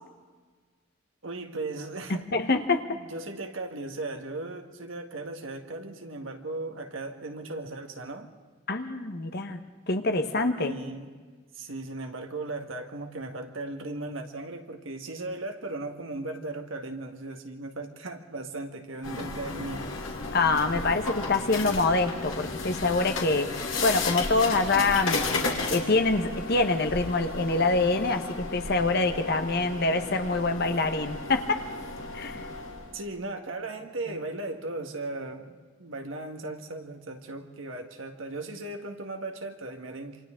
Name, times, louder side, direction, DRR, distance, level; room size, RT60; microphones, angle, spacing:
voice 1, 1.2-2.2 2.9-8.3 10.6-11.1 11.5-19.9 32.9-40.2, right 2 dB, 80° right, 4 dB, 1.8 m, -37 dB
voice 2, 2.3-2.8 8.7-9.6 9.9-10.7 20.3-23.5 23.8-25.2 25.7-31.6 32.1-32.4, left 3 dB, 55° left, 6 dB, 1.3 m, -25 dB
sound 1, 19.0-33.0, left 3 dB, 80° left, 2.8 m, -34 dB
27.5 x 25.5 x 3.8 m, 1.4 s
head